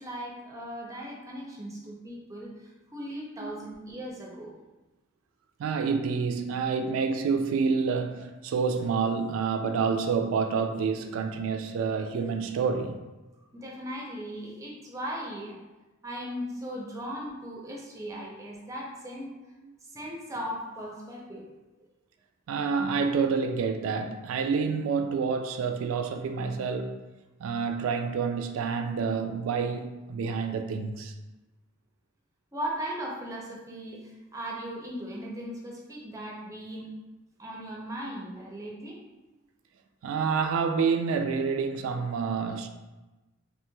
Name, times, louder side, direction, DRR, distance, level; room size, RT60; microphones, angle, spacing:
voice 1, 0.0-4.5 13.5-15.6 16.0-19.3 19.9-21.5 32.5-36.9 37.4-39.0, equal, 15° right, 0.4 m, -38 dB
voice 2, 5.6-13.0 22.5-27.0 27.4-31.1 40.0-42.7, right 5 dB, 85° right, 0.3 m, -28 dB
3.0 x 2.9 x 2.2 m
head